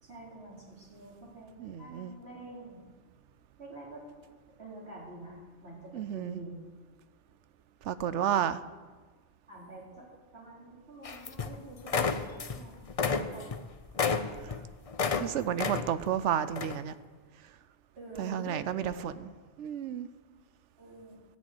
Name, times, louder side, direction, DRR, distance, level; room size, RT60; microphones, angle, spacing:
voice 1, 0.0-2.9 3.6-4.0 4.6-6.6 9.5-10.1 10.3-12.8 13.1-13.5 18.0-19.1 20.8-21.2, right 2 dB, 65° right, -5 dB, 4.1 m, -47 dB
voice 2, 1.6-2.1 5.9-6.4 7.8-8.6 15.2-16.9 18.2-19.1 19.6-20.1, right 9 dB, 85° right, 14 dB, 1.0 m, -31 dB
sound 1, 11.0-11.6 11.8-12.6 12.9-15.3 15.6-16.1 16.6-16.8, left 5 dB, 40° left, 0.6 m, -31 dB
13.0 x 6.3 x 9.5 m, 1.4 s
omnidirectional pair, 1.2 m